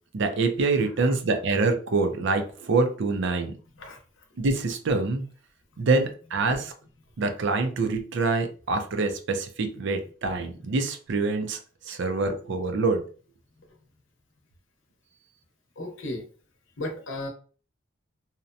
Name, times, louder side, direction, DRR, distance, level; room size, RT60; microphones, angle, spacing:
voice 1, 0.1-3.5 4.4-5.3 5.8-6.7 7.2-11.6 11.9-13.0, right 3 dB, 60° right, 7 dB, 0.5 m, -25 dB
voice 2, 15.8-16.2 16.8-17.3, left 1 dB, 70° left, 2 dB, 0.7 m, -34 dB
2.7 x 2.1 x 2.6 m, 0.40 s
head